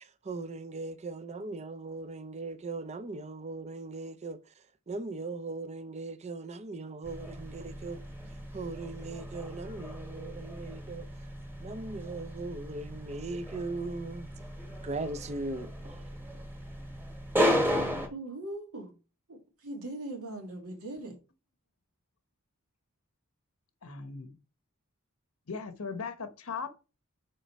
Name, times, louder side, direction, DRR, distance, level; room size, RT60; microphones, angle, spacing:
voice 1, 0.0-4.4 4.9-8.0 8.5-11.1 11.6-14.3 14.8-16.0, right 3 dB, 30° right, 0.5 m, -39 dB
sound 1, 7.0-18.1, equal, 10° right, 1.2 m, -35 dB
voice 2, 18.1-19.0 19.3-21.2, right 2 dB, 90° right, 2.3 m, -40 dB
voice 3, 23.8-24.4 25.5-26.9, left 5 dB, 80° left, 1.1 m, -38 dB
6.5 x 5.1 x 4.5 m
head